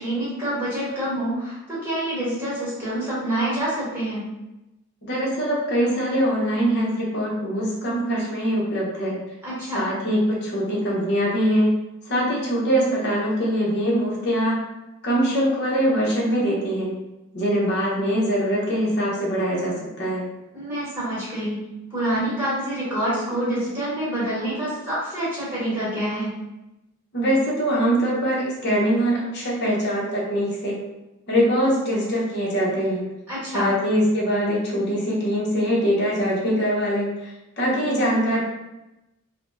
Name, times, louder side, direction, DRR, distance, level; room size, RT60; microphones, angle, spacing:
voice 1, 0.0-4.3 9.4-9.9 20.5-21.6 21.9-26.3 33.3-33.7, right 1 dB, 10° right, -9 dB, 1.3 m, -27 dB
voice 2, 5.0-9.2 9.7-11.7 12.1-14.6 15.0-17.0 17.3-20.3 27.1-30.8 31.3-33.1 33.5-38.4, equal, 50° left, -4 dB, 0.8 m, -23 dB
3.3 x 2.1 x 2.5 m, 0.97 s
head